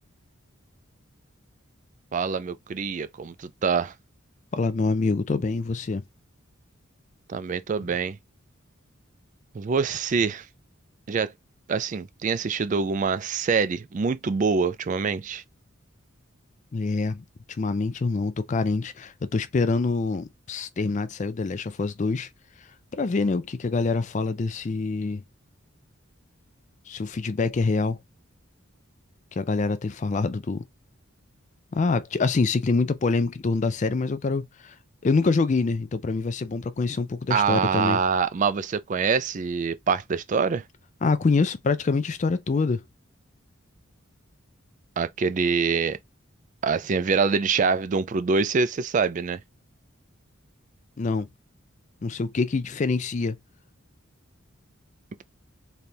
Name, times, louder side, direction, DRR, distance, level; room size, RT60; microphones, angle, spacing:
voice 1, 2.1-3.9 7.3-8.2 9.5-10.4 11.1-11.3 11.7-15.4 37.3-40.6 45.0-46.0 46.6-49.4, right 5 dB, 35° right, 0.3 m, -25 dB
voice 2, 4.5-6.0 16.7-17.2 17.6-22.3 22.9-25.2 26.9-28.0 29.4-30.6 31.7-34.4 35.0-38.0 41.0-42.8 51.0-51.3 52.0-53.4, left 3 dB, 35° left, 0.4 m, -25 dB
3.4 x 2.3 x 4.2 m
head